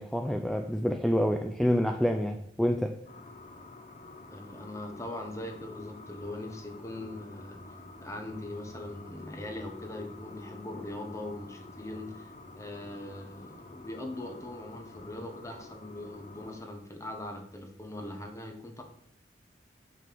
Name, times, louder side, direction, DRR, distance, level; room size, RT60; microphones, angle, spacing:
voice 1, 0.0-3.0, equal, ahead, 0.4 m, -27 dB
sound 1, 3.1-16.6, left 2 dB, 40° left, 1.0 m, -48 dB
voice 2, 4.3-7.6 8.0-12.3 12.6-18.8, left 1 dB, 20° left, 1.3 m, -41 dB
6.5 x 5.4 x 6.9 m
head